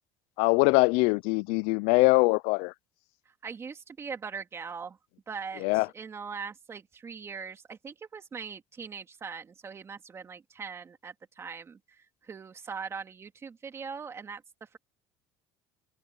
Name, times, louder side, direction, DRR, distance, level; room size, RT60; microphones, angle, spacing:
voice 1, 0.4-2.7 5.6-5.9, left 27 dB, 80° left, 0.4 m, -23 dB
voice 2, 3.4-5.0 5.3-14.8, right 5 dB, 25° right, 2.8 m, -41 dB
cardioid pair, 135°, 11 cm